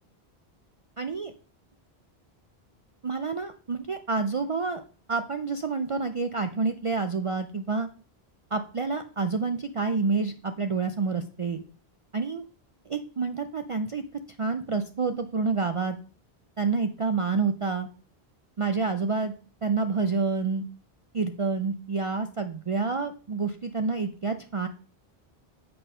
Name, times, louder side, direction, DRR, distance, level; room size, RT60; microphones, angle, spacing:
voice 1, 1.0-1.3 3.0-4.8 5.1-7.9 8.5-11.6 12.1-12.4 12.9-14.0 14.4-16.0 16.6-17.9 18.6-19.3 19.6-20.6 21.1-24.7, right 4 dB, 50° right, 8 dB, 0.4 m, -28 dB
6.8 x 5.4 x 5.5 m, 0.40 s
omnidirectional pair, 1.1 m